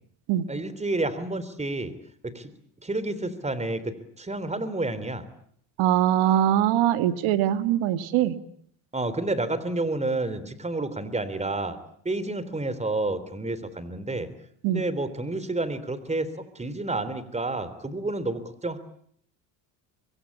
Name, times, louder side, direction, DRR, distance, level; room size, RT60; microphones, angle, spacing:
voice 1, 0.5-1.9 2.2-2.5 2.8-5.3 8.9-11.8 12.0-14.3 14.7-16.3 16.5-18.8, right 2 dB, 15° right, 15 dB, 3.4 m, -30 dB
voice 2, 5.8-8.4 14.6-14.8, right 11 dB, 70° right, 11 dB, 2.1 m, -22 dB
25.5 x 22.5 x 8.5 m, 0.65 s
supercardioid pair, 95°, 49 cm